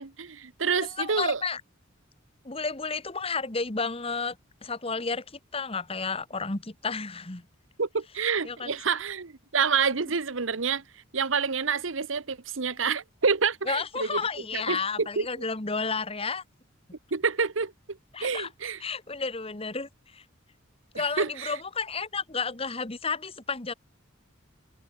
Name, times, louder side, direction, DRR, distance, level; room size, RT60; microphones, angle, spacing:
voice 1, 0.0-1.4 7.8-10.8 11.1-14.2 14.5-15.3 17.1-18.8 20.9-21.5, right 5 dB, 75° right, 1.1 m, -28 dB
voice 2, 0.8-1.6 2.4-4.4 4.6-7.5 8.4-8.7 13.7-16.4 18.1-18.5 18.8-20.2 20.9-23.7, left 4 dB, 30° left, 1.5 m, -32 dB
open air
head